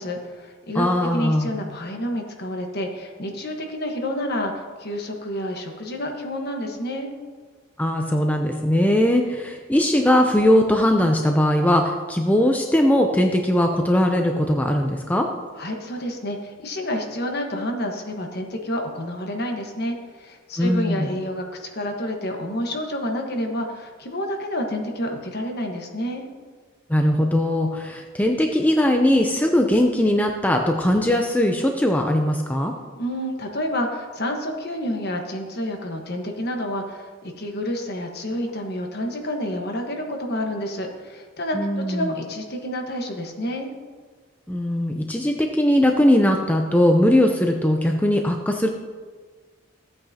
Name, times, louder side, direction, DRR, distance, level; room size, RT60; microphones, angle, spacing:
voice 1, 0.0-7.1 15.6-26.2 33.0-37.1 37.4-43.7, equal, 50° left, 3 dB, 1.3 m, -29 dB
voice 2, 0.7-1.5 7.8-15.3 20.6-21.1 26.9-32.7 41.5-42.1 44.5-48.7, left 1 dB, 10° left, 3 dB, 0.5 m, -20 dB
15.5 x 8.7 x 2.8 m, 1.5 s
head